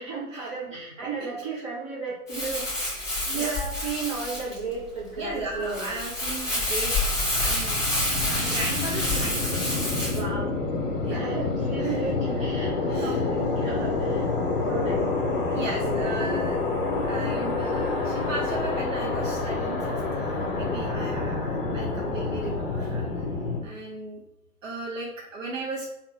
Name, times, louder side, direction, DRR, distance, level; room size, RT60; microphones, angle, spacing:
voice 1, 0.0-5.9 10.1-10.5 11.1-14.2 14.7-15.1 15.5-16.2, right 4 dB, 20° right, -6 dB, 0.5 m, -34 dB
Crumpling crinkling, 2.3-10.2, left 1 dB, 5° left, 1.3 m, -28 dB
voice 2, 5.2-7.0 7.4-9.6 11.0-11.3 11.8-12.1 12.6-13.3 14.5-14.6 15.5-16.7 17.1-23.1 23.6-24.2 24.6-25.9, right 2 dB, 55° right, -2 dB, 0.8 m, -36 dB
sound 1, 6.5-23.6, left 3 dB, 35° left, 0.7 m, -28 dB
3.5 x 2.5 x 4.0 m, 0.80 s
figure-of-eight pair, 120°, 46 cm